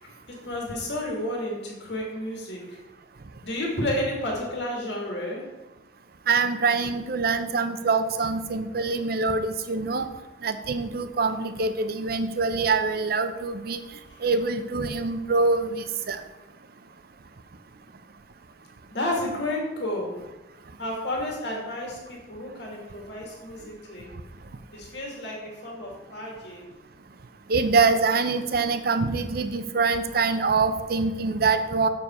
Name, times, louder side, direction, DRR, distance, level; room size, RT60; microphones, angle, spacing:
voice 1, 0.0-2.8 3.4-5.5 18.9-20.2 20.8-24.1 24.7-26.6, left 1 dB, 65° left, -1 dB, 2.1 m, -31 dB
voice 2, 6.3-10.1 10.4-13.8 14.2-16.2 27.5-31.9, right 4 dB, 55° right, 10 dB, 0.6 m, -24 dB
6.9 x 6.9 x 4.4 m, 1.1 s
head